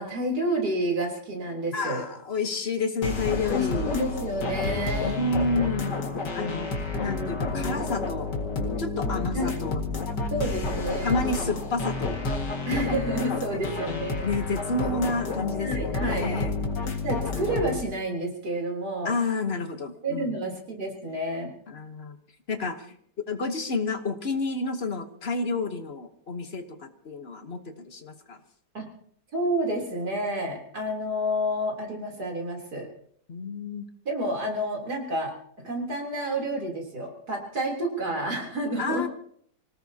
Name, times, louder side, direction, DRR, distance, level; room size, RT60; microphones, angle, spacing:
voice 1, 0.0-2.0 3.4-5.2 9.3-9.5 10.3-11.2 12.7-14.3 15.6-16.3 17.0-19.1 20.0-21.5 28.7-28.9 29.3-32.9 34.1-35.3 35.6-39.1, right 1 dB, 65° right, 1 dB, 4.0 m, -29 dB
voice 2, 1.7-3.9 5.0-6.0 6.3-6.7 7.0-8.3 8.8-9.8 11.0-12.2 14.2-16.5 19.0-20.3 21.7-22.2 22.5-22.9 23.2-28.4 33.3-33.9 38.8-39.1, left 3 dB, 40° left, 7 dB, 1.3 m, -30 dB
sound 1, 3.0-17.8, left 3 dB, 90° left, 2.7 m, -30 dB
25.5 x 18.0 x 2.8 m, 0.65 s
omnidirectional pair, 1.8 m